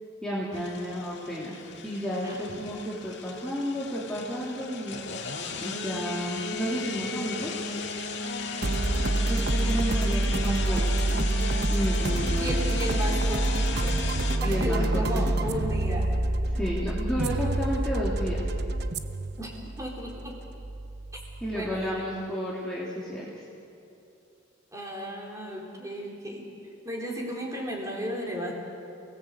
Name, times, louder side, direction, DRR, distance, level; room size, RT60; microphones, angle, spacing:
voice 1, 0.2-1.5 1.8-5.0 5.6-7.6 9.3-11.2 11.7-12.6 14.4-15.2 16.5-18.4 21.4-23.4, equal, 5° left, -7 dB, 2.9 m, -32 dB
sound 1, 0.5-14.4, left 4 dB, 55° left, 2.1 m, -36 dB
sound 2, 8.6-22.0, right 2 dB, 50° right, 1.0 m, -27 dB
voice 2, 12.4-14.0 14.4-16.1 19.4-20.4 21.5-22.2 24.7-26.5 26.8-28.5, equal, 15° right, -1 dB, 3.9 m, -34 dB
29.5 x 18.5 x 8.1 m, 2.8 s
head